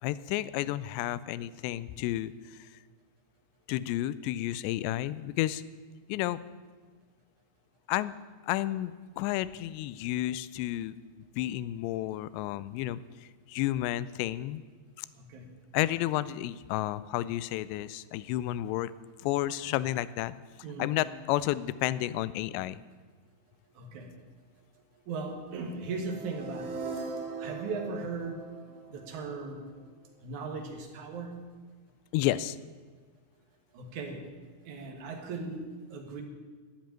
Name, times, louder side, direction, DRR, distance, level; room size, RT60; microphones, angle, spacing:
voice 1, 0.0-2.7 3.7-5.6 6.1-6.4 7.9-8.1 8.4-11.0 11.4-14.6 15.0-15.1 15.7-18.9 19.2-20.3 20.8-22.8 32.1-32.6, left 15 dB, 85° left, 17 dB, 2.5 m, -31 dB
voice 2, 15.2-15.5 20.6-21.0 23.8-24.1 25.1-26.7 27.4-28.5 28.9-29.6 30.2-31.4 33.7-34.2 34.7-36.2, right 3 dB, 55° right, 2 dB, 2.4 m, -38 dB
sound 1, 25.8-29.8, right 4 dB, 85° right, 4.9 m, -40 dB
13.0 x 8.9 x 8.9 m, 1.5 s
omnidirectional pair, 5.4 m